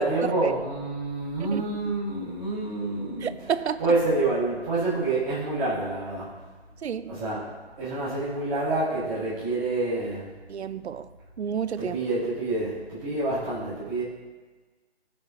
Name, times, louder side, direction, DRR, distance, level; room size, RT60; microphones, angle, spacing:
voice 1, 0.0-6.3 7.1-7.4 7.8-10.3 11.8-14.0, right 2 dB, 5° right, -11 dB, 1.3 m, -28 dB
voice 2, 3.2-3.9 6.8-7.2 10.5-11.1 11.4-12.0, right 7 dB, 90° right, 13 dB, 0.6 m, -30 dB
18.5 x 6.6 x 2.8 m, 1.3 s
hypercardioid pair, 175°, 32 cm